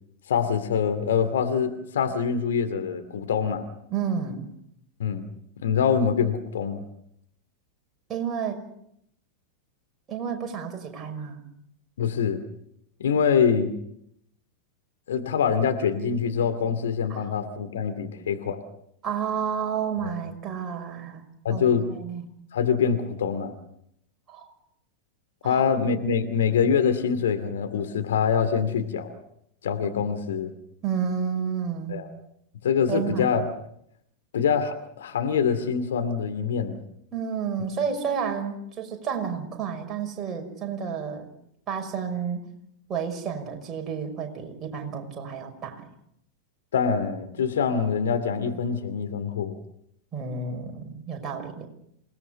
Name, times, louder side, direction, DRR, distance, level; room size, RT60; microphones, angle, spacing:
voice 1, 0.3-3.7 5.0-5.3 5.6-6.8 12.0-12.4 13.0-13.7 15.1-18.6 20.0-20.1 21.4-21.9 22.5-23.6 25.4-29.1 29.6-30.5 31.9-32.1 32.6-33.4 34.3-36.8 46.7-49.6, left 6 dB, 60° left, 8 dB, 2.4 m, -24 dB
voice 2, 3.9-4.5 8.1-8.6 10.1-11.4 17.1-17.3 19.0-21.2 21.5-22.2 24.3-24.5 25.4-25.6 30.8-32.0 32.9-33.3 37.1-41.3 41.7-42.4 42.9-45.8 50.1-51.7, right 7 dB, 25° right, 3 dB, 5.9 m, -31 dB
28.0 x 19.0 x 6.8 m, 0.74 s
figure-of-eight pair, 90°, 0 cm